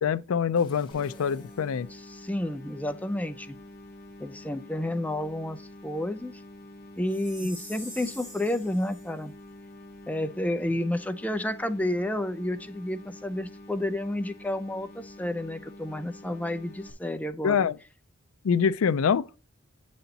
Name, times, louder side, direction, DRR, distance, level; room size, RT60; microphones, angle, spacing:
voice 1, 0.0-1.9 17.4-17.7 18.4-19.2, left 6 dB, 75° left, 0.4 m, -25 dB
sound 1, 0.5-2.7 3.1-3.2, left 3 dB, 25° left, 1.3 m, -54 dB
sound 2, 0.9-16.9, left 1 dB, 45° left, 1.0 m, -47 dB
voice 2, 1.9-3.6 4.2-6.4 7.0-9.3 10.1-17.7, left 1 dB, 5° left, 0.4 m, -31 dB
Chime, 7.1-9.1, right 1 dB, 35° right, 3.1 m, -44 dB
7.8 x 4.3 x 4.0 m
head